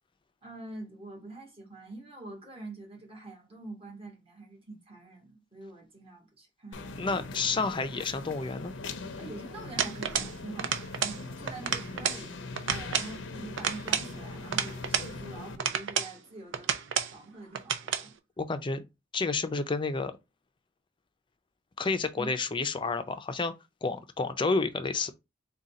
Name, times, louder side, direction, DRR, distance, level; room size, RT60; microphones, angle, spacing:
voice 1, 0.4-7.2 9.2-16.7 17.1-18.1 22.1-22.3, right 2 dB, 30° right, 1.5 m, -45 dB
sound 1, 6.7-15.6, left 3 dB, 80° left, 0.6 m, -41 dB
voice 2, 7.0-8.7 18.4-18.9 19.1-20.1 21.8-23.5 23.8-25.1, left 4 dB, 25° left, 0.5 m, -30 dB
sound 2, 9.8-10.3 10.6-11.2 11.5-12.2 12.6-13.1 13.6-15.1 15.6-16.1 16.5-17.1 17.5-18.1, right 7 dB, 75° right, 0.5 m, -30 dB
3.7 x 2.3 x 4.1 m
head